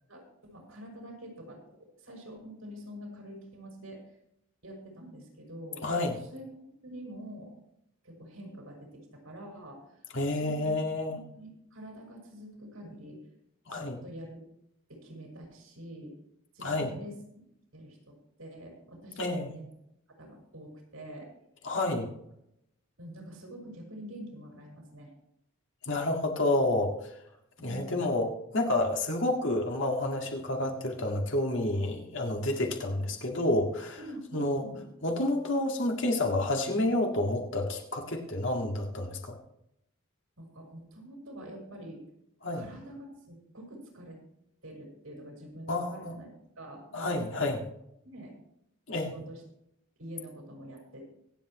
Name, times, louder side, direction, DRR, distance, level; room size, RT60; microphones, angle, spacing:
voice 1, 0.1-4.1 4.6-5.9 6.2-7.5 8.0-10.1 10.4-10.8 11.1-13.3 13.7-14.4 14.9-16.1 16.5-17.5 17.7-19.7 20.2-21.3 23.0-25.1 26.4-26.5 27.6-28.1 34.0-34.9 40.4-42.0 42.5-44.2 44.6-47.5 48.0-48.3 48.9-49.4 50.0-51.0, right 1 dB, 90° right, -1 dB, 5.7 m, -46 dB
voice 2, 5.8-6.2 10.1-11.1 13.7-14.0 16.6-16.9 19.2-19.5 21.6-22.1 25.9-27.1 27.6-34.0 34.3-34.6 35.0-39.4 42.4-42.7 45.7-46.1 46.9-47.6 48.9-49.1, left 1 dB, 60° left, 2 dB, 2.0 m, -29 dB
24.0 x 8.4 x 3.1 m, 0.79 s
head